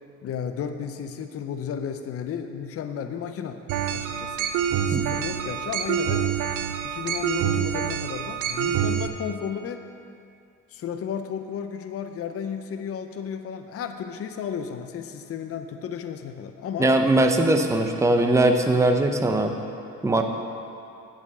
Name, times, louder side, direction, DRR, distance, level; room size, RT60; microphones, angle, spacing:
voice 1, 0.2-3.6 3.9-6.3 6.8-9.8 10.7-16.9, left 7 dB, 50° left, 7 dB, 0.6 m, -33 dB
sound 1, 3.7-9.1, right 9 dB, 85° right, 0.6 m, -26 dB
voice 2, 16.8-19.5 20.0-20.2, right 2 dB, 10° right, 4 dB, 0.7 m, -20 dB
8.2 x 5.6 x 7.8 m, 2.6 s
cardioid pair, 90°, 30 cm